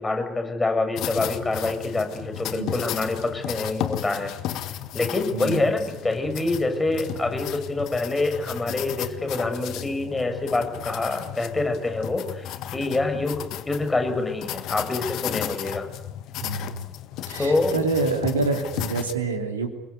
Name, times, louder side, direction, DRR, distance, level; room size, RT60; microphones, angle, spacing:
voice 1, 0.0-4.3 4.9-15.8 17.4-17.7, left 2 dB, 15° left, 6 dB, 6.7 m, -26 dB
sound 1, 1.0-19.1, left 12 dB, 55° left, 1.8 m, -34 dB
voice 2, 5.3-5.7 16.4-16.9 17.3-19.7, right 3 dB, 80° right, 5 dB, 3.2 m, -27 dB
29.5 x 22.0 x 8.4 m, 0.92 s
figure-of-eight pair, 60°, 0 cm